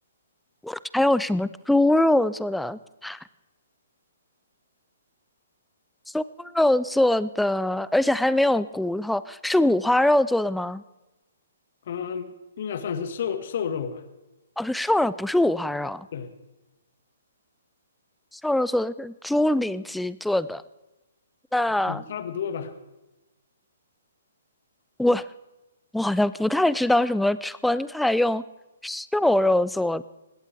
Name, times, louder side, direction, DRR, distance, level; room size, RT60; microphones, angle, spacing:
voice 1, 0.6-3.2 6.1-10.8 14.6-16.1 18.4-20.6 21.5-22.0 25.0-25.2 25.9-28.4 28.8-30.0, left 1 dB, ahead, 17 dB, 0.5 m, -23 dB
voice 2, 11.9-12.3 12.6-14.0 16.1-16.3 21.9-22.7, left 7 dB, 55° left, 9 dB, 1.7 m, -30 dB
19.5 x 18.0 x 3.5 m, 1.0 s
figure-of-eight pair, 125°, 0 cm